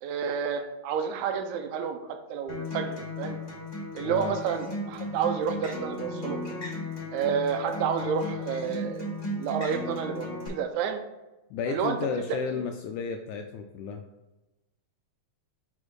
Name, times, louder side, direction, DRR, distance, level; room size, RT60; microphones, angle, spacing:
voice 1, 0.0-3.4 4.0-6.4 7.1-9.1 9.4-11.0 11.7-12.0 12.5-12.6, right 7 dB, 90° right, 5 dB, 1.7 m, -30 dB
Acoustic guitar, 2.5-10.5, left 2 dB, 20° left, 2.1 m, -35 dB
voice 2, 4.0-4.4 11.5-14.0, left 6 dB, 85° left, 4 dB, 1.7 m, -33 dB
5.2 x 4.2 x 4.7 m, 1.0 s
omnidirectional pair, 4.0 m